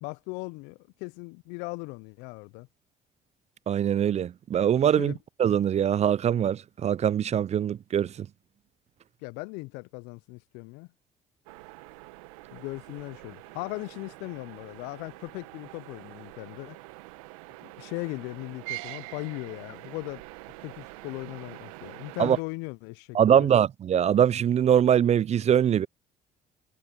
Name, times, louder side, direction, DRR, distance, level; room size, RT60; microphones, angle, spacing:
voice 1, 0.0-2.7 5.0-5.2 9.2-10.9 12.5-16.8 17.6-20.2 20.6-23.5, left 27 dB, 75° left, 0.7 m, -38 dB
voice 2, 3.7-5.1 5.4-8.3 22.2-22.4 23.1-25.9, right 9 dB, 40° right, 0.5 m, -23 dB
sound 1, 11.5-22.4, right 23 dB, 80° right, 1.7 m, -45 dB
hypercardioid pair, 55°, 18 cm